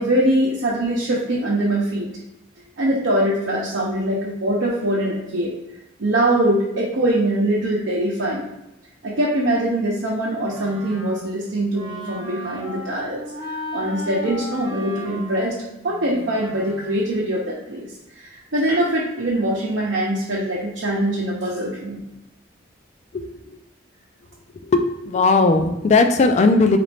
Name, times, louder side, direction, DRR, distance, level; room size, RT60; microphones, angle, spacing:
voice 1, 0.0-2.1 2.8-5.5 6.0-8.5 9.0-13.2 13.5-15.5 15.8-17.9 18.2-22.0, right 1 dB, 80° right, -6 dB, 0.7 m, -22 dB
Wind instrument woodwind instrument, 10.5-17.1, left 1 dB, 25° right, 0.6 m, -35 dB
voice 2, 24.7-26.8, left 3 dB, 35° left, 7 dB, 0.3 m, -17 dB
4.0 x 2.5 x 3.3 m, 0.94 s
head